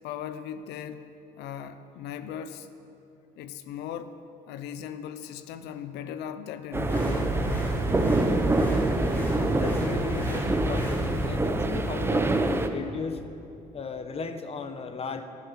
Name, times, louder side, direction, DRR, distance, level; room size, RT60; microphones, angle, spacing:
voice 1, 0.0-1.1 1.4-2.7 3.4-4.2 4.5-7.3, left 9 dB, 85° left, 11 dB, 0.6 m, -38 dB
sound 1, 6.7-12.7, right 2 dB, 15° right, 0.7 m, -26 dB
sound 2, 6.9-11.3, equal, 10° left, 2.1 m, -31 dB
voice 2, 9.5-13.2 13.7-15.3, left 5 dB, 35° left, 9 dB, 0.9 m, -36 dB
11.0 x 11.0 x 5.9 m, 2.7 s
cardioid pair, 110°, 17 cm